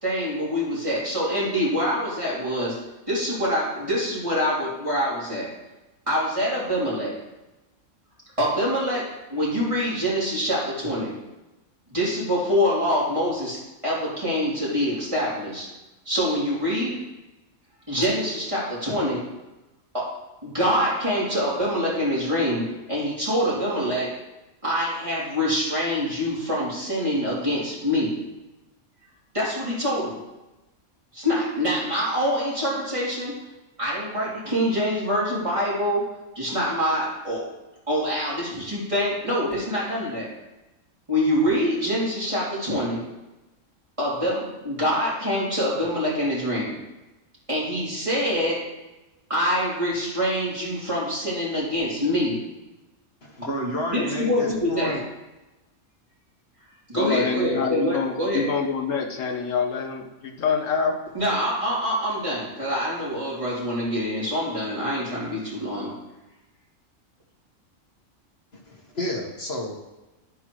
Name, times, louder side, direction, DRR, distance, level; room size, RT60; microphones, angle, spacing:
voice 1, 0.0-5.6 6.1-7.2 8.4-11.1 11.9-13.6 13.8-15.7 16.0-17.0 17.9-19.2 19.9-24.2 24.6-28.1 29.3-30.2 31.1-33.3 33.8-36.1 36.3-37.5 37.9-40.3 41.1-43.0 44.0-46.8 47.5-48.7 49.3-52.4 53.9-55.0 56.9-58.5 61.1-65.9, equal, 25° right, -7 dB, 3.3 m, -25 dB
voice 2, 53.2-55.0 68.5-69.7, left 1 dB, 55° left, 0 dB, 1.5 m, -31 dB
voice 3, 56.9-61.0, left 5 dB, 75° left, 4 dB, 1.3 m, -26 dB
11.5 x 8.1 x 3.1 m, 1.0 s
omnidirectional pair, 1.3 m